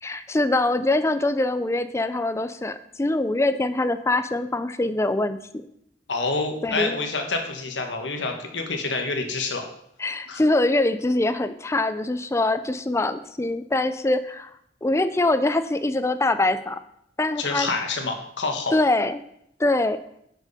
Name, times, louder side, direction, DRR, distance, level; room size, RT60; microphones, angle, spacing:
voice 1, 0.0-5.6 6.6-7.0 10.0-14.5 14.8-16.8 17.2-17.7 18.7-19.2 19.6-20.0, left 2 dB, 15° left, 11 dB, 0.4 m, -23 dB
voice 2, 6.1-9.7 10.3-10.4 17.4-18.8, left 3 dB, 85° left, 4 dB, 1.5 m, -27 dB
10.0 x 6.3 x 4.2 m, 0.72 s
head